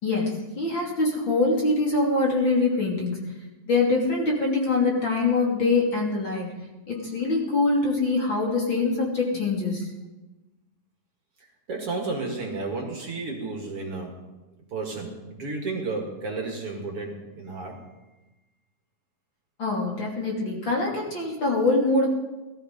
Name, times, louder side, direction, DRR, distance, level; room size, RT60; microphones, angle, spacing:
voice 1, 0.0-3.2 3.7-6.5 6.9-9.9 19.6-22.1, left 3 dB, 35° left, -2 dB, 3.3 m, -24 dB
voice 2, 11.7-14.2 14.7-17.8, right 3 dB, 45° right, 1 dB, 2.6 m, -32 dB
18.5 x 13.5 x 5.2 m, 1.1 s
omnidirectional pair, 3.8 m